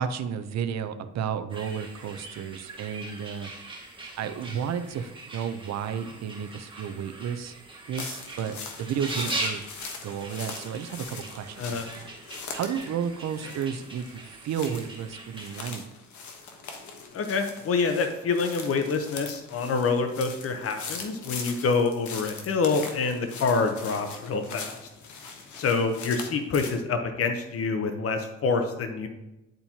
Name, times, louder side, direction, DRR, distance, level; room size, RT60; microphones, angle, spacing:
voice 1, 0.0-3.5 4.2-7.5 7.9-9.6 10.0-12.1 12.5-15.9, right 7 dB, 60° right, 10 dB, 0.6 m, -32 dB
sound 1, 1.5-15.7, right 2 dB, 15° right, 2.2 m, -40 dB
sound 2, 8.0-26.7, left 5 dB, 75° left, 1.2 m, -41 dB
voice 2, 17.1-24.8 25.5-29.1, left 4 dB, 50° left, 6 dB, 0.8 m, -26 dB
10.5 x 4.3 x 2.8 m, 0.95 s
cardioid pair, 90°, 30 cm